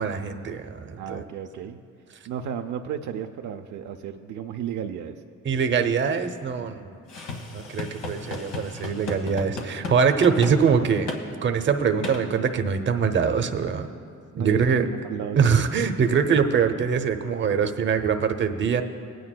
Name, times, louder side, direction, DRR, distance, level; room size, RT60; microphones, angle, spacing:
voice 1, 0.0-1.2 5.4-6.9 7.5-11.1 11.4-13.9 14.4-14.9 15.4-18.8, right 6 dB, 40° right, 8 dB, 0.7 m, -23 dB
voice 2, 1.0-1.8 2.3-5.2 14.3-15.4 15.8-15.9, right 9 dB, 75° right, 5 dB, 0.6 m, -33 dB
sound 1, 7.1-10.0 10.2-10.6 11.1-11.2 12.0-12.2, left 3 dB, 90° left, 1.5 m, -34 dB
19.5 x 9.3 x 2.2 m, 2.4 s
cardioid pair, 90°, 30 cm